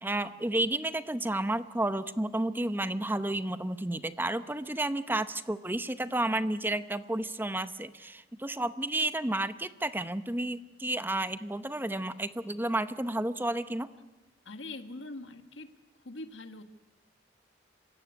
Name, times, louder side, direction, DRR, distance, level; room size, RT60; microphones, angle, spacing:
voice 1, 0.0-13.9, right 1 dB, 10° right, 12 dB, 0.7 m, -31 dB
voice 2, 14.5-15.7 16.0-16.6, left 2 dB, 85° left, 8 dB, 1.7 m, -42 dB
26.5 x 16.0 x 9.6 m, 1.1 s
head